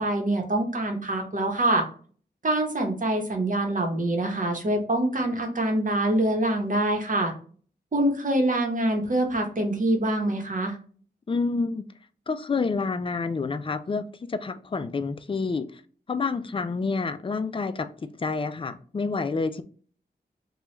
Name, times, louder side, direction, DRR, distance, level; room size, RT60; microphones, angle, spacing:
voice 1, 0.0-1.9 2.4-7.3 7.9-10.8, right 1 dB, 50° right, 1.0 m, -25 dB
voice 2, 11.3-11.8 12.3-15.8 16.1-19.6, left 4 dB, 30° left, 0.4 m, -28 dB
3.0 x 2.3 x 3.1 m
wide cardioid pair, 65°, 18 cm